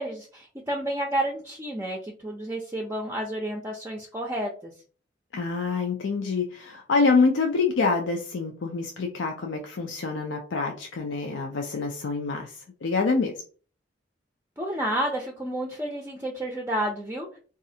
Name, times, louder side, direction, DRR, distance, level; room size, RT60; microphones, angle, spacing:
voice 1, 0.0-4.7 14.6-17.3, right 1 dB, 15° right, 1 dB, 0.4 m, -30 dB
voice 2, 5.3-13.3, left 4 dB, 90° left, 3 dB, 0.4 m, -26 dB
4.0 x 2.4 x 2.7 m, 0.40 s
head